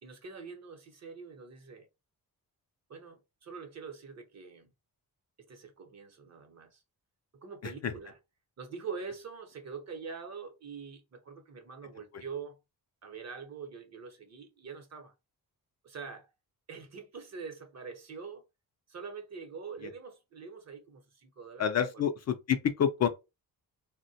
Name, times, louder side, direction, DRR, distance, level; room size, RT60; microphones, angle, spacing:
voice 1, 0.0-1.9 2.9-4.7 5.4-6.8 7.3-8.2 8.6-12.6 13.0-15.1 15.8-16.3 16.7-18.4 18.9-21.7 21.9-22.1, right 5 dB, 45° right, 0.8 m, -44 dB
voice 2, 21.6-23.1, left 8 dB, 45° left, 0.4 m, -28 dB
3.5 x 2.1 x 2.7 m
cardioid pair, 115°, 37 cm